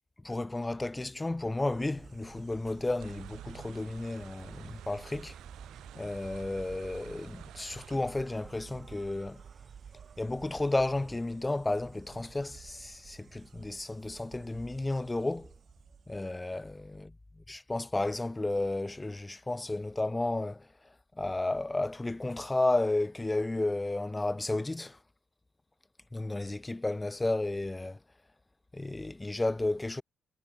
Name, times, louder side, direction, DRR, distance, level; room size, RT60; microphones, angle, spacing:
voice 1, 0.2-5.3 5.9-9.4 10.2-15.5 16.1-20.7 21.2-25.0 26.1-28.0 28.7-30.0, left 2 dB, 20° left, 1.4 m, -32 dB
Insect, 1.5-16.6, right 7 dB, 55° right, 1.3 m, -51 dB
sound 1, 3.0-8.0, right 14 dB, 80° right, 1.6 m, -52 dB
hypercardioid pair, 50°, 0 cm